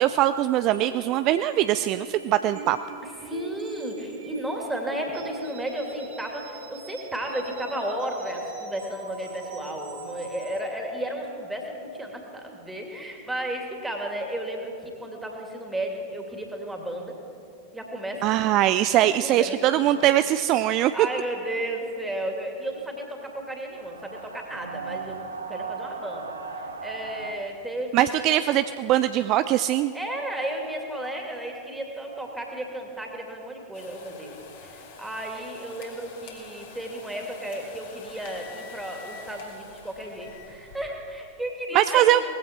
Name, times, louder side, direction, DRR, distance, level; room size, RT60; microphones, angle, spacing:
voice 1, 0.0-2.8 18.2-21.1 27.9-29.9 41.7-42.2, right 13 dB, 40° right, 12 dB, 0.4 m, -21 dB
sound 1, 0.7-10.6, right 3 dB, 55° right, 2.5 m, -42 dB
voice 2, 3.2-17.1 17.7-18.3 19.0-19.9 20.9-25.2 25.5-28.1 29.9-42.2, right 1 dB, 5° right, 1 dB, 2.7 m, -33 dB
sound 2, 23.7-27.3, right 4 dB, 75° right, 1.1 m, -37 dB
sound 3, 33.7-40.8, left 4 dB, 55° left, 3.0 m, -46 dB
19.0 x 15.5 x 4.6 m, 2.7 s
figure-of-eight pair, 90°, 0 cm